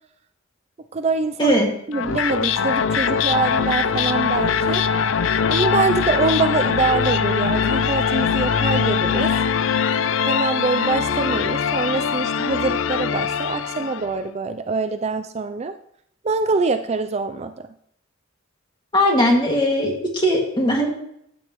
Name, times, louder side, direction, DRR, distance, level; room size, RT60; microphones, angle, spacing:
voice 1, 0.9-1.6 1.9-4.8 5.5-9.3 10.3-15.7 16.2-17.5, right 4 dB, 35° right, 9 dB, 0.4 m, -24 dB
sound 1, 1.9-14.1, left 6 dB, 75° left, 0.5 m, -22 dB
voice 2, 18.9-20.9, equal, 20° left, 0 dB, 2.1 m, -19 dB
14.0 x 8.5 x 3.1 m, 0.73 s
head